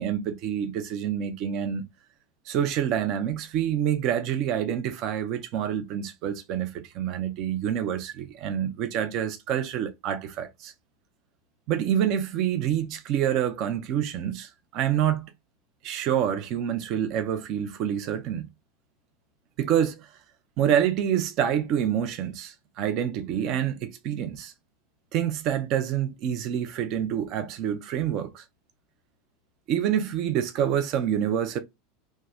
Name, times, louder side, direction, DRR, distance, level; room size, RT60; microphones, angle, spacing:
voice 1, 0.0-1.8 2.5-10.7 11.7-15.3 15.8-18.5 19.6-20.1 20.6-24.5 25.1-28.4 29.7-31.6, right 9 dB, 45° right, 0.5 m, -27 dB
2.7 x 2.2 x 3.1 m
figure-of-eight pair, 80°, 0 cm